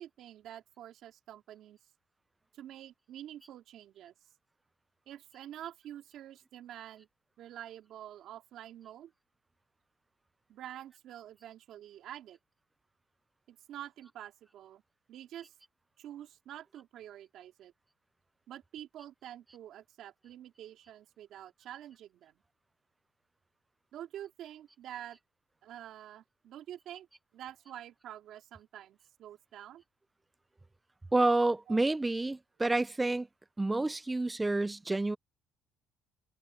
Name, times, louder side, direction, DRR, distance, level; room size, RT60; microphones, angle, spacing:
voice 1, 0.0-1.8 2.5-4.1 5.1-7.1 7.4-9.1 10.5-12.4 13.5-14.8 15.1-15.5 16.0-17.7 18.5-22.4 23.9-25.2 25.6-27.1 27.3-29.8 31.7-31.8, right 11 dB, 55° right, 3.4 m, -47 dB
voice 2, 31.1-33.3 33.6-35.2, right 2 dB, 10° right, 0.3 m, -29 dB
cardioid pair, 150°, 0 cm